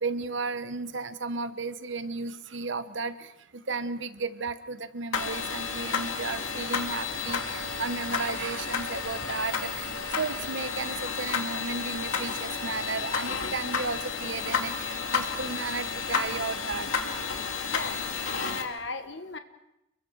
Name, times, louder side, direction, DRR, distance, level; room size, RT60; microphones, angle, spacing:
voice 1, 0.0-16.9, right 4 dB, 65° right, 12 dB, 1.2 m, -34 dB
sound 1, 5.1-18.6, left 5 dB, 75° left, 2.4 m, -31 dB
voice 2, 17.6-18.1 18.4-19.4, left 3 dB, 60° left, 8 dB, 1.4 m, -37 dB
30.0 x 22.5 x 4.8 m, 0.88 s
head